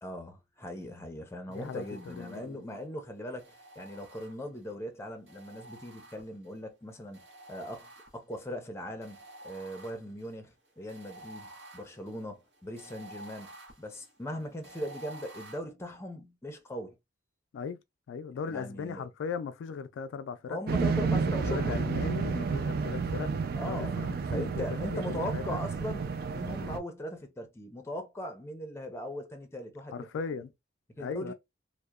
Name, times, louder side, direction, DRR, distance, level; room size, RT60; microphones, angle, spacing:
voice 1, 0.0-9.2 9.4-13.5 13.8-17.0 18.5-19.1 20.5-21.8 23.6-23.9 24.3-30.1 30.9-31.3, equal, 15° left, 0.5 m, -39 dB
voice 2, 1.5-2.8 17.5-17.8 18.1-20.6 21.4-25.6 29.9-30.5 31.0-31.3, left 6 dB, 80° left, 0.3 m, -38 dB
sound 1, 1.5-2.8 3.4-4.7 5.3-6.6 7.1-8.5 9.0-15.6, right 1 dB, 70° right, 0.9 m, -51 dB
sound 2, 20.7-26.8, right 5 dB, 55° right, 0.3 m, -31 dB
2.8 x 2.1 x 2.3 m
head